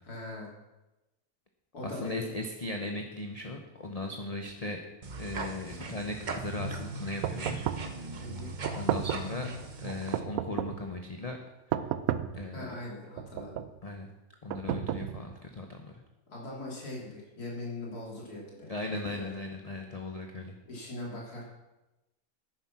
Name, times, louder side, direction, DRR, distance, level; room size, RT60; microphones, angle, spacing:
voice 1, 0.0-0.5 1.7-2.3 5.7-5.8 8.2-8.5 12.5-13.6 16.3-19.3 20.7-21.5, left 2 dB, 80° left, -3 dB, 3.6 m, -41 dB
voice 2, 1.8-4.8 5.1-8.1 8.7-9.5 9.8-11.4 11.7-11.9 12.3-12.7 13.8-14.1 14.4-15.9 18.7-20.6, left 2 dB, 30° left, 3 dB, 0.9 m, -38 dB
sound 1, 5.0-10.2, right 3 dB, 35° right, 0.9 m, -39 dB
sound 2, 7.2-8.0 8.6-9.4 10.1-10.9 11.7-12.4 13.2-13.8 14.5-15.4, right 10 dB, 70° right, 1.0 m, -32 dB
10.0 x 9.9 x 6.0 m, 1.0 s
omnidirectional pair, 1.6 m